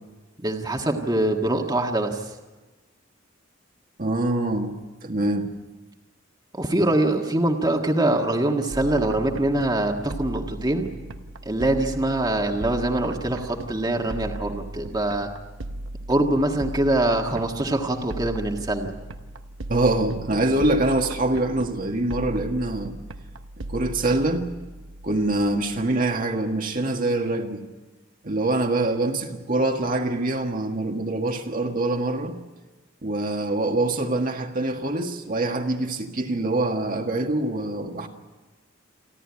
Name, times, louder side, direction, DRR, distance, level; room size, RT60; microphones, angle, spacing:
voice 1, 0.4-2.3 6.5-10.9 11.4-15.3 16.1-18.9, right 1 dB, 20° right, 1.6 m, -24 dB
voice 2, 4.0-5.5 19.7-22.9 23.7-24.5 25.0-27.7 28.2-32.3 33.0-38.1, right 2 dB, 45° right, 1.6 m, -24 dB
sound 1, 8.7-26.3, right 1 dB, 70° right, 1.0 m, -37 dB
29.0 x 12.5 x 9.6 m
head